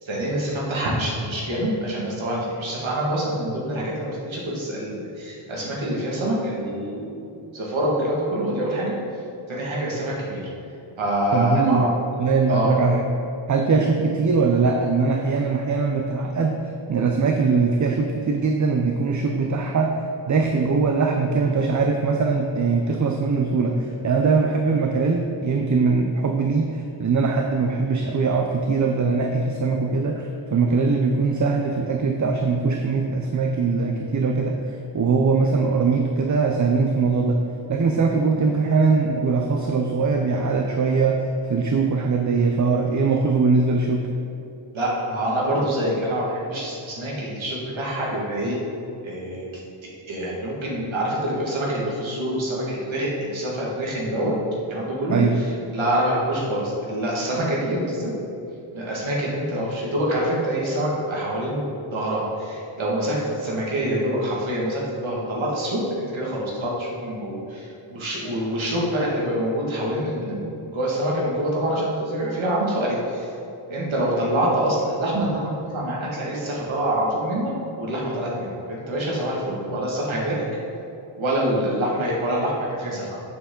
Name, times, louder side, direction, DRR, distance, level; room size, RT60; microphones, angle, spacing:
voice 1, 0.0-9.0 9.5-10.5 11.0-11.9 12.5-12.7 44.7-48.6 49.0-49.5 49.8-54.3 54.7-55.5 55.7-58.1 58.7-73.3 73.7-77.5 77.8-80.5 81.2-83.2, right 1 dB, 70° right, -4 dB, 1.9 m, -26 dB
voice 2, 11.3-11.9 12.2-13.0 13.5-16.6 16.9-20.0 20.3-37.4 37.7-44.1 55.1-55.4, right 4 dB, 40° right, 3 dB, 0.5 m, -21 dB
8.4 x 6.8 x 3.8 m, 2.8 s
wide cardioid pair, 145°, 48 cm